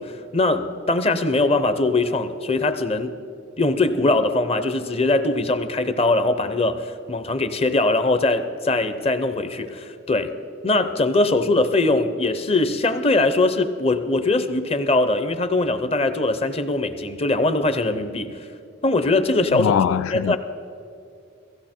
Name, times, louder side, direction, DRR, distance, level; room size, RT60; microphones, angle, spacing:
voice 1, 0.0-3.1 3.6-10.3 10.6-18.4 18.8-19.7 20.1-20.4, left 2 dB, 30° left, 0.6 m, -21 dB
voice 2, 19.5-20.4, left 8 dB, 85° left, 0.3 m, -22 dB
17.0 x 15.5 x 4.4 m
head